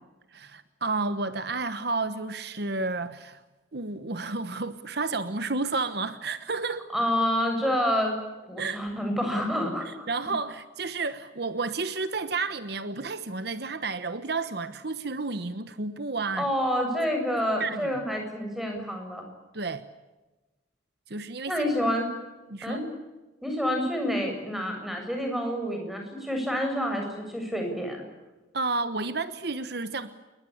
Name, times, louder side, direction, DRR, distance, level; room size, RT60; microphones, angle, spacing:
voice 1, 0.3-3.4 3.7-6.8 8.6-8.8 9.8-16.5 17.6-17.9 19.5-19.9 21.1-21.7 22.5-22.8 28.5-30.1, right 3 dB, 55° right, 12 dB, 1.1 m, -31 dB
voice 2, 6.9-8.2 8.5-9.9 10.3-10.4 16.4-19.3 21.5-22.1 22.6-22.8 23.4-28.0, equal, ahead, 3 dB, 7.4 m, -28 dB
28.5 x 22.5 x 8.7 m, 1.1 s
head